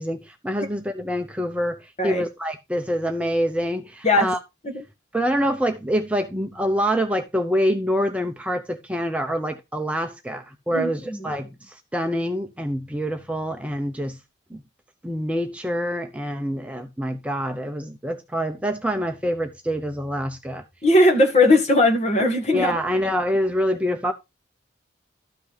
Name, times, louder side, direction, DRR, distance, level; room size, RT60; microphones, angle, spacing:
voice 1, 0.0-4.4 5.1-14.2 14.5-14.6 15.0-20.6 22.5-24.1, equal, 5° right, 0.7 m, -26 dB
voice 2, 10.7-11.3 20.8-22.8, left 1 dB, 35° left, 1.8 m, -19 dB
13.0 x 5.9 x 3.4 m
head